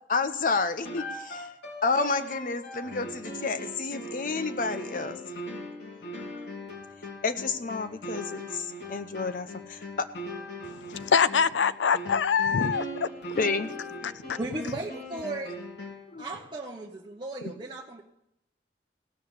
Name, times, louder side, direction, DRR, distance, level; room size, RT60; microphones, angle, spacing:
voice 1, 0.1-1.5 1.8-5.2 6.0-6.2 7.2-10.1 13.4-13.7 16.1-16.2, left 4 dB, 50° left, 0.7 m, -30 dB
sound 1, 0.8-16.2, equal, 70° left, 3.1 m, -40 dB
voice 2, 10.6-13.1 14.0-14.4, left 6 dB, 90° left, 0.5 m, -25 dB
voice 3, 14.4-15.5 16.2-18.0, right 2 dB, 25° right, 1.1 m, -36 dB
16.5 x 6.7 x 8.1 m
head